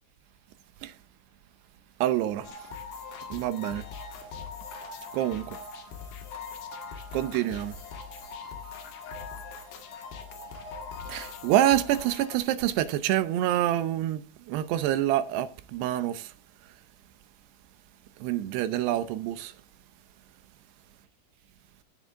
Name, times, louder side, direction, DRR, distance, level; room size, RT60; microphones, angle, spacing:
voice 1, 2.0-2.5 3.3-3.9 5.1-5.6 7.1-7.8 11.1-16.3 18.2-19.5, right 12 dB, 80° right, 2.8 m, -27 dB
sound 1, 2.4-12.4, left 5 dB, 75° left, 3.8 m, -41 dB
15.0 x 8.5 x 3.6 m
omnidirectional pair, 4.9 m